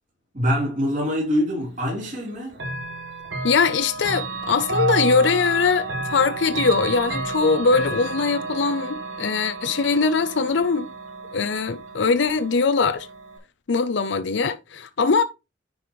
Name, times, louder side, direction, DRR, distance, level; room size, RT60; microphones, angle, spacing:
voice 1, 0.3-2.6, equal, 40° right, 3.6 m, -24 dB
Chime / Clock, 2.5-13.4, right 3 dB, 75° right, 2.5 m, -31 dB
voice 2, 3.4-10.9 11.3-13.1 13.7-15.2, left 4 dB, 65° left, 0.6 m, -21 dB
9.8 x 5.3 x 3.1 m
head